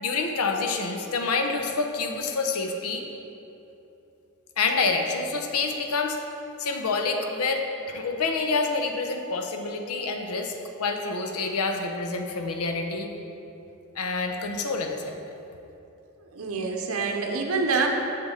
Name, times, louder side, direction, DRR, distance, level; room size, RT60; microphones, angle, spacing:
voice 1, 0.0-3.1 4.6-6.2 6.6-10.5 10.8-13.1 13.9-15.2, left 4 dB, 80° left, 4 dB, 0.7 m, -27 dB
voice 2, 16.3-17.9, right 4 dB, 70° right, 2 dB, 0.7 m, -26 dB
7.2 x 6.8 x 3.8 m, 2.9 s
head